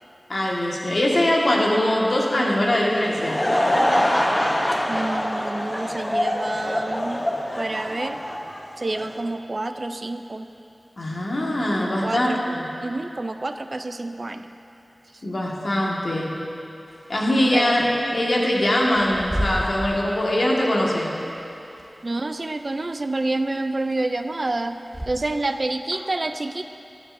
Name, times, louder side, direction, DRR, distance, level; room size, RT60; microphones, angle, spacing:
voice 1, 0.3-3.4 11.0-12.7 15.2-16.3 17.1-21.1, left 1 dB, 65° left, -3 dB, 1.6 m, -22 dB
Laughter / Crowd, 2.9-9.2, left 1 dB, 20° left, 0.8 m, -24 dB
voice 2, 4.9-7.2 7.6-8.2 8.8-10.5 12.0-12.4 12.8-14.6 15.1-15.2 17.5-17.8 22.0-26.6, right 2 dB, 50° right, 8 dB, 0.4 m, -28 dB
Bird / Wind, 16.9-25.6, equal, 15° right, 0.7 m, -35 dB
15.5 x 9.9 x 2.6 m, 2.8 s
wide cardioid pair, 65°, 0 cm